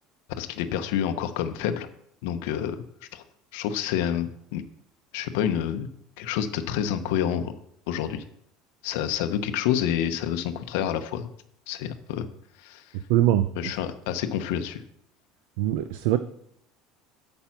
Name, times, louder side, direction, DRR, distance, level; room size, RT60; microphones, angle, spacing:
voice 1, 0.4-1.9 2.2-2.8 3.1-3.2 3.5-4.6 5.1-5.9 6.2-7.5 7.9-8.2 8.8-11.3 11.7-12.3 12.6-12.9 13.6-14.8, left 9 dB, 75° left, 8 dB, 0.7 m, -28 dB
voice 2, 13.1-13.5 15.6-16.2, right 13 dB, 75° right, 11 dB, 0.4 m, -22 dB
8.8 x 5.3 x 5.9 m, 0.72 s
cardioid pair, 175°, 0 cm